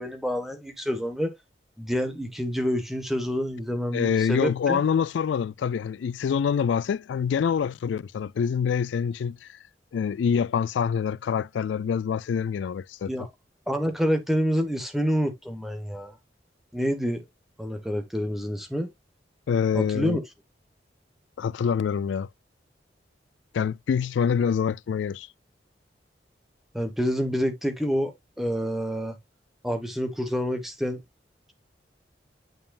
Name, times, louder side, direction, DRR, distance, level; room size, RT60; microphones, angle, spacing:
voice 1, 0.0-1.3 1.8-4.8 13.1-13.3 13.7-16.1 16.7-17.2 17.6-18.9 19.7-20.2 26.7-29.2 29.6-31.0, equal, ahead, 1.2 m, -27 dB
voice 2, 3.9-9.6 9.9-13.1 19.5-20.2 21.4-22.3 23.5-25.3, left 7 dB, 85° left, 0.3 m, -26 dB
9.0 x 5.4 x 2.4 m
head